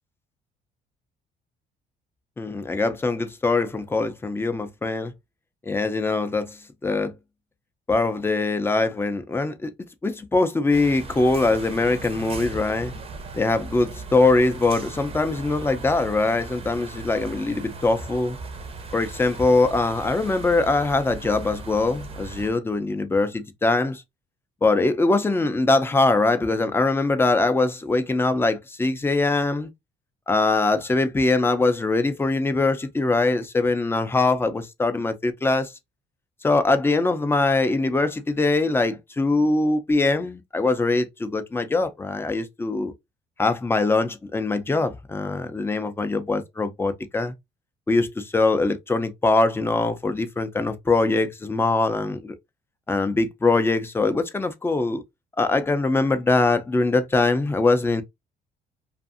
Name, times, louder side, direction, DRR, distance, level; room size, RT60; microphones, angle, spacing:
voice 1, 2.4-5.1 5.6-7.1 7.9-9.7 10.0-12.9 13.3-18.4 18.9-24.0 24.6-29.7 30.3-35.7 36.4-42.9 43.4-47.3 47.9-52.3 52.9-55.0 55.4-58.0, left 3 dB, 15° left, 0.4 m, -22 dB
sound 1, 10.7-22.5, right 3 dB, 35° right, 0.6 m, -38 dB
2.5 x 2.5 x 2.4 m
cardioid pair, 110°, 17 cm